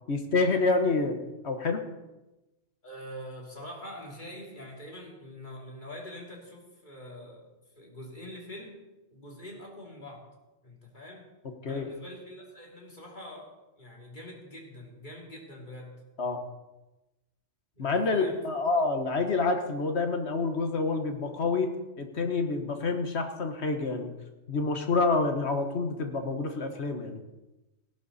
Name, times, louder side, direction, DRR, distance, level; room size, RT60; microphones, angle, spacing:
voice 1, 0.1-1.2 1.4-1.8 11.6-11.9 16.2-16.4 17.8-24.1 24.5-27.2, left 3 dB, 65° left, 6 dB, 1.6 m, -28 dB
voice 2, 2.8-7.5 7.8-8.8 9.1-10.3 10.6-11.2 11.7-15.9 17.7-18.5, left 1 dB, 40° left, -1 dB, 3.3 m, -44 dB
17.0 x 12.0 x 4.2 m, 1.0 s
omnidirectional pair, 1.2 m